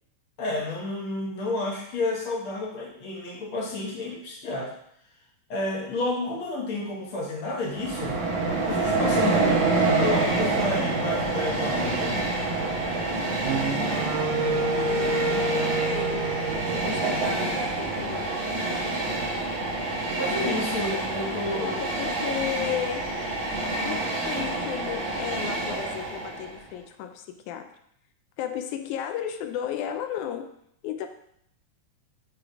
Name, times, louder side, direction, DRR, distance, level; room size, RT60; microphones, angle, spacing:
voice 1, 0.4-4.7 5.5-8.2 8.7-12.2 14.3-14.8 20.2-21.8, left 2 dB, 60° left, -2 dB, 1.4 m, -31 dB
Train, 7.7-26.6, right 2 dB, 55° right, 1.4 m, -27 dB
Wind instrument woodwind instrument, 13.4-17.7, right 3 dB, 85° right, 1.5 m, -29 dB
voice 2, 14.8-18.4 21.6-23.1 23.8-27.7 28.4-30.5 30.8-31.1, left 10 dB, 80° left, 7 dB, 1.9 m, -34 dB
6.7 x 3.0 x 5.0 m, 0.71 s
omnidirectional pair, 3.6 m